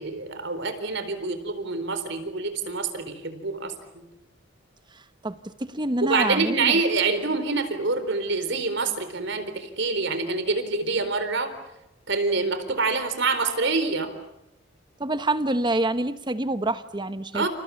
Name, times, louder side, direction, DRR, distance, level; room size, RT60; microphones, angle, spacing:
voice 1, 0.0-4.0 6.0-11.5 12.1-14.1 17.3-17.5, right 3 dB, 65° right, 10 dB, 4.2 m, -26 dB
voice 2, 5.2-6.7 15.0-17.5, right 2 dB, 25° right, 11 dB, 1.2 m, -26 dB
29.5 x 28.5 x 7.2 m, 0.89 s
head